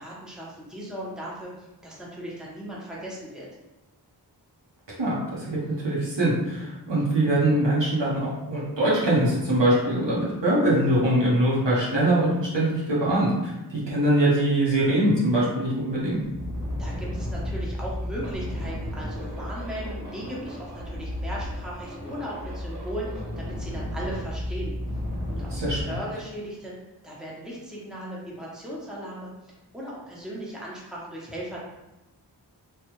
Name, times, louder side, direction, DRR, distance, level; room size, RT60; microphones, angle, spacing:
voice 1, 0.0-3.5 16.8-24.7 25.3-26.7 27.0-31.6, right 1 dB, ahead, -6 dB, 0.9 m, -37 dB
voice 2, 5.0-16.2 25.5-25.8, right 1 dB, 80° right, -6 dB, 1.0 m, -23 dB
sound 1, 16.1-25.8, left 1 dB, 45° right, 1.1 m, -33 dB
3.3 x 2.3 x 3.1 m, 0.99 s
wide cardioid pair, 45°, 43 cm